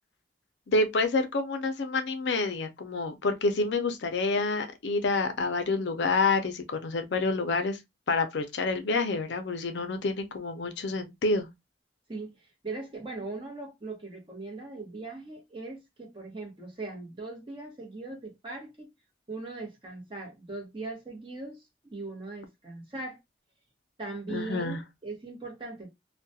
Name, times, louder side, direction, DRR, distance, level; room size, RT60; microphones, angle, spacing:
voice 1, 0.7-7.8 8.1-11.5 24.3-24.8, left 3 dB, 70° left, 0.5 m, -28 dB
voice 2, 12.6-18.9 19.3-23.2 24.0-25.9, right 3 dB, 25° right, 0.9 m, -39 dB
2.3 x 2.2 x 2.6 m
head